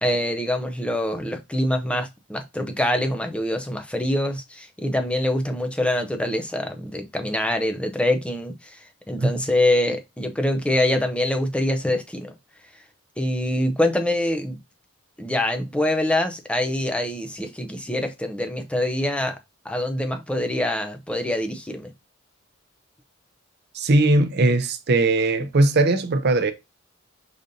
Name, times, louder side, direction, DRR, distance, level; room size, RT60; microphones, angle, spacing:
voice 1, 0.0-8.5 9.1-12.3 13.2-14.6 15.2-19.4 19.6-21.9, left 1 dB, 5° left, 0.6 m, -24 dB
voice 2, 23.7-26.5, right 2 dB, 55° right, 0.6 m, -19 dB
5.0 x 4.0 x 2.7 m
head